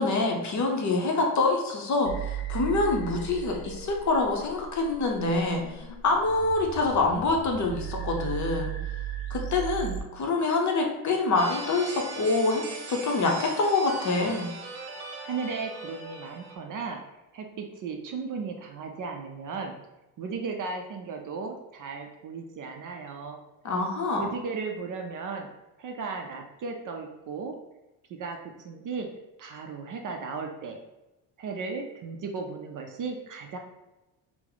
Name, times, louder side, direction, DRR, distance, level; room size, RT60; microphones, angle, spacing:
voice 1, 0.0-8.7 9.3-12.6 12.9-14.5 23.6-24.3, left 3 dB, 40° left, 1 dB, 0.7 m, -26 dB
sound 1, 2.1-10.0, right 8 dB, 75° left, 0.6 m, -36 dB
sound 2, 11.4-16.6, right 2 dB, 85° right, 0.7 m, -39 dB
voice 2, 15.2-17.0 17.3-19.7 20.2-23.4 24.1-25.5 25.8-27.5 28.1-29.1 29.4-30.8 31.4-33.6, right 4 dB, 45° right, 3 dB, 0.5 m, -35 dB
2.8 x 2.1 x 3.8 m, 1.0 s
cardioid pair, 90°, 46 cm